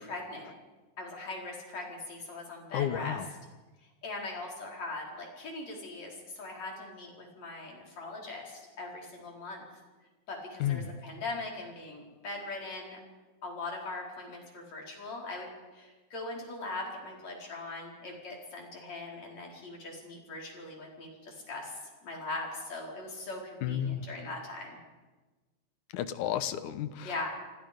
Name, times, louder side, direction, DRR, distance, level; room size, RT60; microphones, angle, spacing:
voice 1, 0.1-0.5 1.0-3.2 4.0-9.6 10.3-13.0 13.4-15.5 15.7-24.7 27.0-27.3, left 2 dB, 65° left, -1 dB, 6.0 m, -40 dB
voice 2, 2.7-3.3 10.6-10.9 23.6-24.1 25.9-27.3, left 10 dB, 90° left, 12 dB, 2.5 m, -32 dB
29.0 x 25.0 x 5.3 m, 1.2 s
omnidirectional pair, 3.4 m